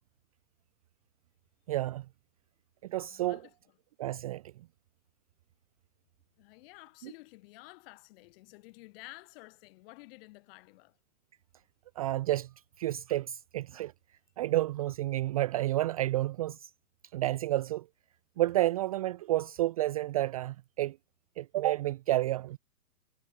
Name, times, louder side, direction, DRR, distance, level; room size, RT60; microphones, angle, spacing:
voice 1, 1.7-2.1 2.8-3.4 4.0-4.4 7.0-7.1 12.0-12.5 12.8-13.9 14.4-16.7 17.1-17.9 18.4-21.0 21.4-22.6, right 15 dB, 25° right, 0.5 m, -30 dB
voice 2, 3.1-3.5 6.4-10.9, left 23 dB, 40° left, 5.2 m, -52 dB
figure-of-eight pair, 115°, 44 cm